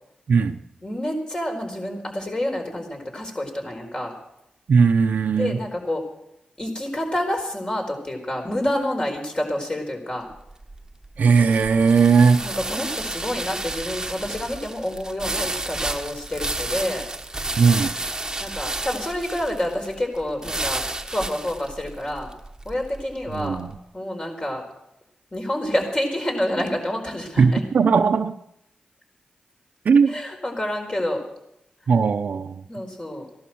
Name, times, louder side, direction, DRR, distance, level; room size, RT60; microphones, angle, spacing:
voice 1, 0.8-4.1 5.4-6.0 6.6-10.3 12.4-17.0 18.4-22.3 22.6-23.6 23.9-24.6 25.3-27.6 30.1-31.2 32.7-33.3, left 1 dB, 30° left, 4.5 m, -28 dB
voice 2, 4.7-5.5 11.2-12.4 17.6-17.9 23.3-23.7 27.4-28.3 29.8-30.1 31.9-32.6, right 5 dB, 70° right, 0.8 m, -18 dB
sound 1, 10.3-23.6, right 2 dB, 20° right, 1.3 m, -31 dB
16.5 x 11.5 x 6.2 m
cardioid pair, 65°, 3 cm